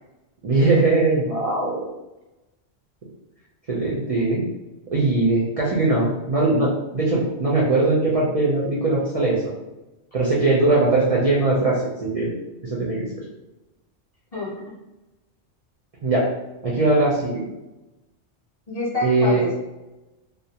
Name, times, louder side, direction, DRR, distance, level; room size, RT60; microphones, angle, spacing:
voice 1, 0.4-1.9 3.7-4.4 4.9-9.4 10.1-12.3 12.6-13.1 16.0-16.3 16.6-17.4 19.0-19.4, right 2 dB, 55° right, -6 dB, 0.4 m, -20 dB
voice 2, 14.3-14.6 18.7-19.5, left 1 dB, 35° left, -8 dB, 0.9 m, -27 dB
2.4 x 2.1 x 2.8 m, 1.0 s
omnidirectional pair, 1.2 m